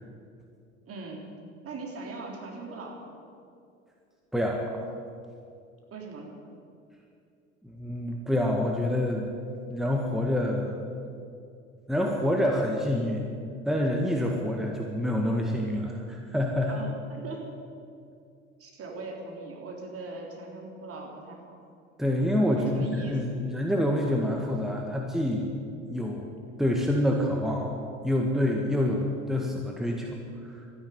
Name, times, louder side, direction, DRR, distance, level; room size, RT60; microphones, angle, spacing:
voice 1, 0.9-1.3 1.6-3.2 5.9-6.4 16.6-17.6 18.6-21.4 22.5-23.2, right 3 dB, 35° right, 0 dB, 3.8 m, -39 dB
voice 2, 4.3-4.9 7.6-9.3 9.7-10.8 11.9-13.2 13.7-16.7 22.0-25.5 25.9-26.3 26.6-27.7 28.0-30.7, left 1 dB, ahead, 0 dB, 1.8 m, -27 dB
13.5 x 10.5 x 9.6 m, 2.4 s
hypercardioid pair, 75°, 38 cm